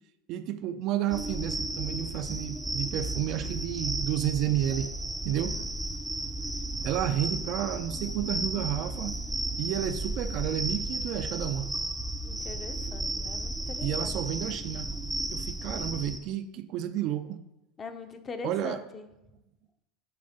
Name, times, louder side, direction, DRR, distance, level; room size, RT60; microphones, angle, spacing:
voice 1, 0.3-4.9 5.2-5.6 6.8-9.2 9.6-11.7 13.8-14.9 15.3-17.4 18.4-18.8, right 11 dB, 55° right, 10 dB, 0.5 m, -31 dB
sound 1, 1.1-16.2, right 2 dB, 5° right, 0.6 m, -34 dB
voice 2, 5.3-5.7 12.2-14.3 17.8-19.1, left 4 dB, 30° left, 7 dB, 0.8 m, -42 dB
8.7 x 3.5 x 5.2 m, 0.94 s
hypercardioid pair, 100°, 0 cm